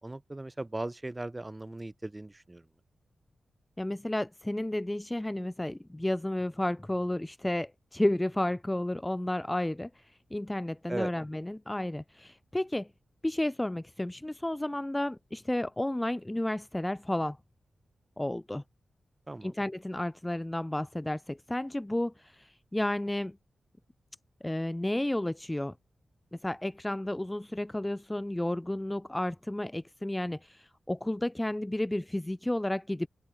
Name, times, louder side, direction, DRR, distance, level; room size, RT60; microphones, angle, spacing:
voice 1, 0.0-2.7 10.9-11.1 19.3-19.5, right 2 dB, 20° right, 5.2 m, -37 dB
voice 2, 3.8-12.9 13.2-17.4 18.2-18.6 19.4-23.4 24.4-25.7 26.3-33.1, left 1 dB, 10° left, 0.5 m, -32 dB
open air
cardioid pair, 80°, 0 cm